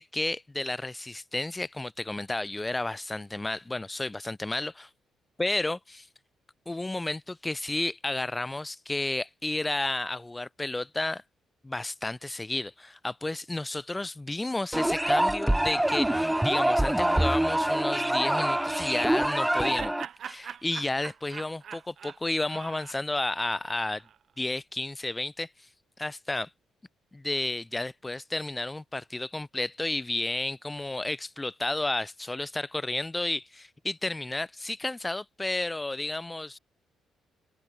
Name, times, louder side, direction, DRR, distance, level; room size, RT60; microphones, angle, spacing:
voice 1, 0.0-4.9 5.4-6.1 6.7-11.2 11.6-19.9 20.3-24.0 24.4-25.5 26.0-26.5 27.1-36.6, left 2 dB, 15° left, 2.0 m, -32 dB
sound 1, 14.7-20.1, right 1 dB, 5° right, 0.8 m, -25 dB
Laughter, 19.0-24.2, right 8 dB, 60° right, 4.0 m, -43 dB
cardioid pair, 90°, 0 cm